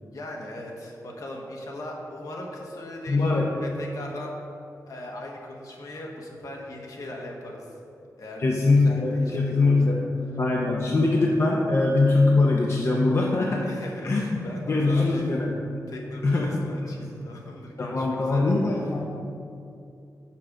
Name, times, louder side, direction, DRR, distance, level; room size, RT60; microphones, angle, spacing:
voice 1, 0.1-4.3 4.9-7.8 8.2-8.4 8.8-10.0 13.6-15.3 15.9-18.5, left 1 dB, 65° left, 0 dB, 1.2 m, -39 dB
voice 2, 3.1-3.5 8.4-13.7 14.0-14.4 14.7-15.5 16.2-16.6 17.8-19.0, left 3 dB, 45° left, -1 dB, 0.6 m, -22 dB
5.8 x 4.9 x 6.5 m, 2.6 s
wide cardioid pair, 105°, 6 cm